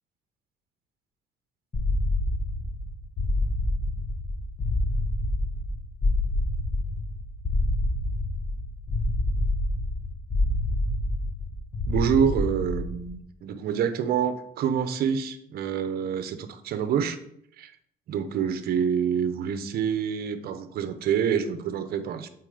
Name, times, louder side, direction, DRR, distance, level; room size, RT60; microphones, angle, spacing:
sound 1, 1.7-13.1, left 1 dB, 30° left, 1.1 m, -27 dB
voice 1, 11.9-17.2 17.6-17.7 18.1-22.3, right 8 dB, 65° right, 10 dB, 0.9 m, -27 dB
8.2 x 4.2 x 5.0 m, 0.72 s
cardioid pair, 110°, 17 cm